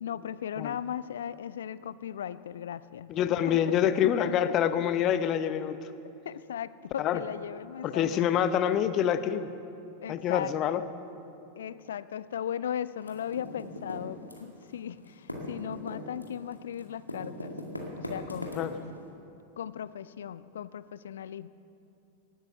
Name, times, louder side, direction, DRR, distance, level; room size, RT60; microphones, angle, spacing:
voice 1, 0.0-3.6 4.2-4.3 6.2-8.4 10.0-10.9 11.6-17.6 18.0-18.6 19.6-21.5, left 9 dB, 65° left, 16 dB, 0.4 m, -37 dB
voice 2, 3.1-5.8 7.0-7.2 7.8-9.5 10.1-10.8 18.6-18.7, left 9 dB, 35° left, 12 dB, 0.7 m, -26 dB
Typing, 13.0-14.7 15.0-19.0, left 1 dB, 85° left, 2.0 m, -39 dB
18.5 x 9.5 x 7.0 m, 2.8 s
figure-of-eight pair, 90°, 0 cm